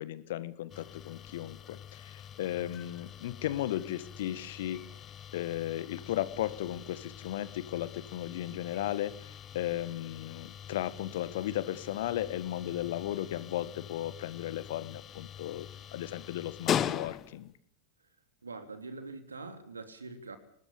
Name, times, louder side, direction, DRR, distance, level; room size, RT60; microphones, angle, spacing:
voice 1, 0.0-4.8 5.3-17.5, left 13 dB, 55° left, 16 dB, 1.5 m, -35 dB
sound 1, 0.7-17.6, left 9 dB, 30° left, 1.3 m, -41 dB
voice 2, 18.4-20.4, right 3 dB, 75° right, 8 dB, 3.3 m, -43 dB
24.0 x 19.5 x 7.0 m, 0.63 s
figure-of-eight pair, 90°, 0 cm